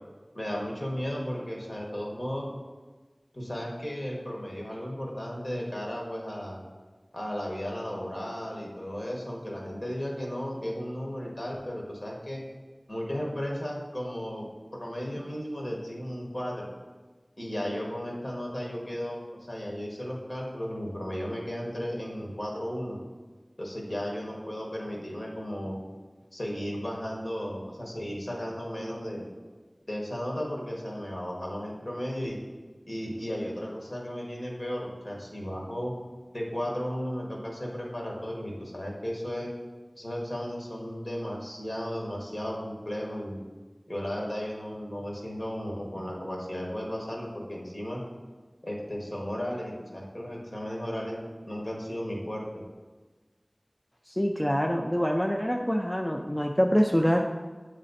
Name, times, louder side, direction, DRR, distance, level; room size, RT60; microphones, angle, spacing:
voice 1, 0.3-2.5 3.3-6.6 7.1-12.4 12.9-14.5 14.8-16.7 17.4-19.2 19.5-23.0 23.6-25.8 26.3-29.3 29.9-32.4 32.9-35.9 36.3-39.5 39.9-43.4 43.9-48.0 48.6-52.5, equal, 55° left, -2 dB, 1.5 m, -34 dB
voice 2, 54.1-57.2, equal, 10° left, 2 dB, 0.4 m, -25 dB
8.5 x 3.2 x 4.1 m, 1.3 s
wide cardioid pair, 40°, 0 cm